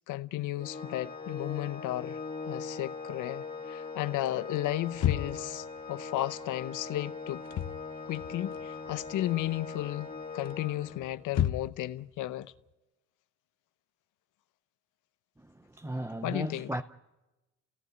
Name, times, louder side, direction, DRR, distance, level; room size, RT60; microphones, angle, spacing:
voice 1, 0.1-2.2 2.5-7.4 8.1-12.5 16.2-16.7, left 15 dB, 85° left, 0.8 m, -34 dB
Organ, 0.6-11.3, left 4 dB, 30° left, 2.2 m, -41 dB
sound 1, 4.9-5.6 7.3-7.8 8.1-9.1 9.4-9.8 10.4-11.9, left 11 dB, 55° left, 0.9 m, -31 dB
voice 2, 15.4-16.8, right 1 dB, 10° right, 0.7 m, -36 dB
27.5 x 17.0 x 9.3 m
cardioid pair, 90°, 30 cm